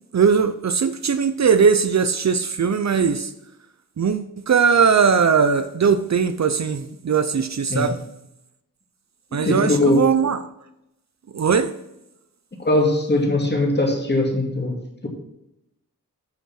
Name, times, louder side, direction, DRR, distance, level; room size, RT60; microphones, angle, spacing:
voice 1, 0.1-3.3 4.0-8.0 9.3-10.4 11.3-11.7, right 6 dB, 50° right, 0.6 m, -19 dB
voice 2, 9.3-10.0 12.6-14.8, left 1 dB, 30° left, 2.2 m, -20 dB
9.2 x 5.6 x 5.9 m
wide cardioid pair, 90°, 34 cm